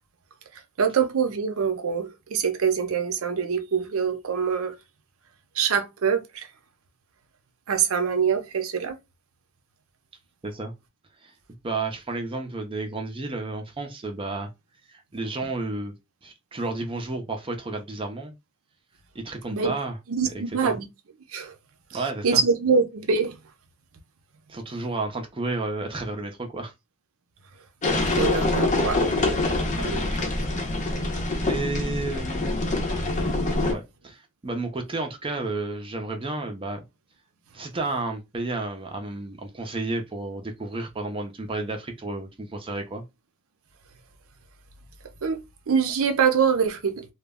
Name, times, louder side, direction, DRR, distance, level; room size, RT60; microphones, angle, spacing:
voice 1, 0.8-4.7 5.6-6.5 7.7-9.0 19.5-19.7 20.1-20.9 21.3-21.5 21.9-23.4 28.1-29.0 29.7-30.1 45.2-45.4 45.7-47.1, right 6 dB, 70° right, 0.6 m, -24 dB
voice 2, 11.6-14.5 14.9-15.9 16.2-18.3 19.1-20.0 20.6-20.8 21.9-22.4 24.5-26.7 31.4-32.5 33.7-36.8 37.5-43.0, right 2 dB, 25° right, 0.5 m, -31 dB
sound 1, 27.8-33.7, left 2 dB, 35° left, 0.6 m, -25 dB
2.2 x 2.0 x 3.4 m
head